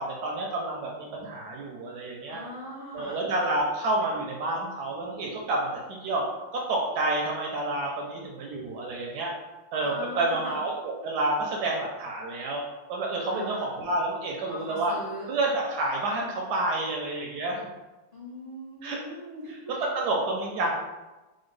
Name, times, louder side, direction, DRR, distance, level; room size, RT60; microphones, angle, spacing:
voice 1, 0.0-2.4 2.9-6.2 6.5-9.3 9.7-10.7 11.0-12.6 12.9-14.9 15.3-17.6 18.8-19.0 19.5-20.7, right 2 dB, 70° right, -1 dB, 1.0 m, -29 dB
voice 2, 2.3-3.2 9.8-10.6 13.3-13.7 14.4-15.3 18.1-19.5, equal, 70° left, -8 dB, 0.4 m, -40 dB
4.3 x 2.2 x 3.1 m, 1.1 s
omnidirectional pair, 2.1 m